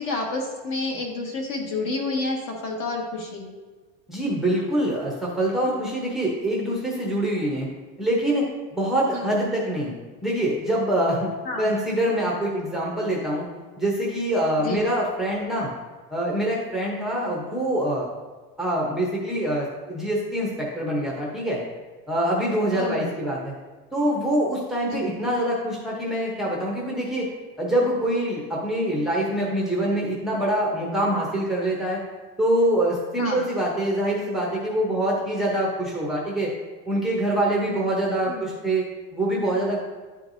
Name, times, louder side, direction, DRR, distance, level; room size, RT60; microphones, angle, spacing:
voice 1, 0.0-3.5 9.1-9.3 11.4-11.7 14.6-14.8 17.2-17.5 22.7-23.1 24.9-25.1 33.2-33.4 38.3-38.6, left 3 dB, 45° left, 0 dB, 1.5 m, -29 dB
voice 2, 4.1-7.7 8.0-8.5 8.7-9.9 10.2-13.4 13.8-15.7 16.1-18.1 18.6-21.6 22.1-23.5 23.9-27.3 27.6-32.0 32.4-36.5 36.8-38.8 39.1-39.8, right 1 dB, ahead, -4 dB, 0.8 m, -25 dB
11.5 x 4.5 x 2.6 m, 1.4 s
cardioid pair, 175°, 31 cm